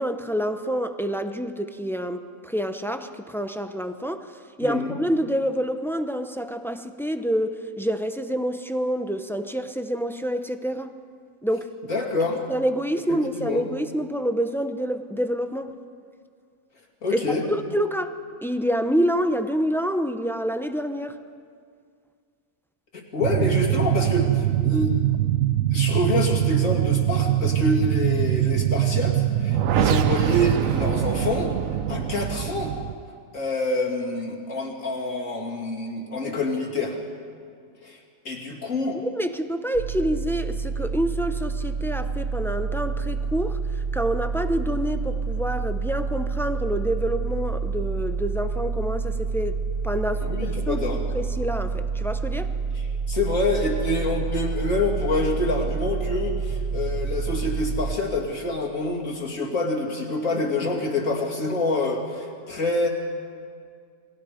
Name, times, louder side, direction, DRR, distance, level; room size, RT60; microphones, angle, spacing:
voice 1, 0.0-4.3 4.6-10.9 11.4-11.7 12.5-15.7 17.1-17.2 17.5-18.1 18.4-21.2 39.1-43.6 43.9-52.5, equal, 5° left, 8 dB, 0.4 m, -27 dB
voice 2, 4.6-4.9 11.9-12.4 13.1-13.7 17.0-17.4 22.9-24.9 25.7-31.5 31.9-32.7 33.3-37.0 37.8-38.0 38.2-39.0 50.2-51.0 52.7-62.9, left 2 dB, 60° left, -1 dB, 3.0 m, -26 dB
sound 1, 23.2-32.9, right 12 dB, 70° right, 1.1 m, -23 dB
sound 2, 39.7-58.0, right 5 dB, 90° right, 1.5 m, -28 dB
29.0 x 21.0 x 5.1 m, 2.2 s
omnidirectional pair, 1.5 m